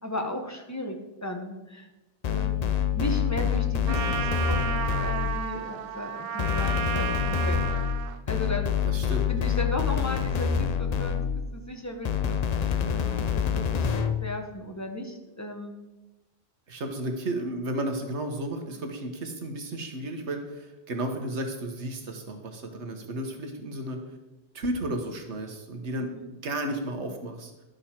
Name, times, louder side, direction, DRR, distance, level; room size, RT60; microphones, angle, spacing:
voice 1, 0.0-1.9 2.2-2.6 2.9-7.6 8.3-8.7 9.3-11.2 11.5-15.7 26.1-26.2, left 1 dB, 15° left, 3 dB, 0.9 m, -35 dB
sound 1, 2.2-5.5 6.4-11.5 12.1-14.3, left 8 dB, 50° left, 0.5 m, -27 dB
Trumpet, 3.9-8.2, right 8 dB, 60° right, 0.7 m, -32 dB
voice 2, 8.8-9.3 16.7-24.0 24.5-27.5, right 1 dB, 75° right, 5 dB, 1.5 m, -33 dB
11.0 x 6.6 x 4.3 m, 1.1 s
omnidirectional pair, 1.2 m